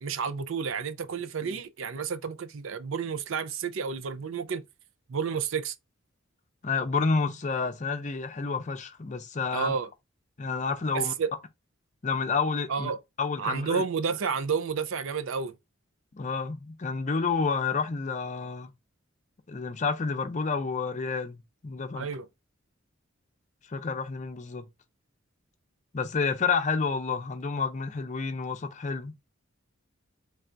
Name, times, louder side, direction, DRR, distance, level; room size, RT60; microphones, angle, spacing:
voice 1, 0.0-4.6 5.1-5.8 9.5-9.9 10.9-11.3 12.7-13.0 13.4-15.5 21.9-22.2, right 6 dB, 75° right, 0.5 m, -30 dB
voice 2, 6.6-9.7 10.4-11.1 12.0-12.9 13.2-13.8 16.1-18.7 19.5-22.1 23.7-24.7 25.9-29.2, left 4 dB, 35° left, 0.5 m, -29 dB
3.3 x 2.5 x 4.4 m
head